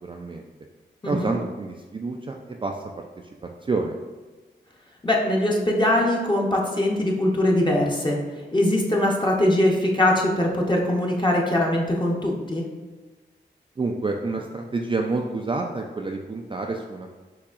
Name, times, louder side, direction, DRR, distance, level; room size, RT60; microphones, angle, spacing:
voice 1, 0.0-0.4 1.1-2.8 3.6-4.0 13.8-17.1, right 3 dB, 25° right, 1 dB, 0.4 m, -28 dB
voice 2, 5.0-8.2 8.5-12.6, left 1 dB, 25° left, -2 dB, 0.8 m, -22 dB
4.7 x 2.8 x 2.4 m, 1.3 s
cardioid pair, 40°, 19 cm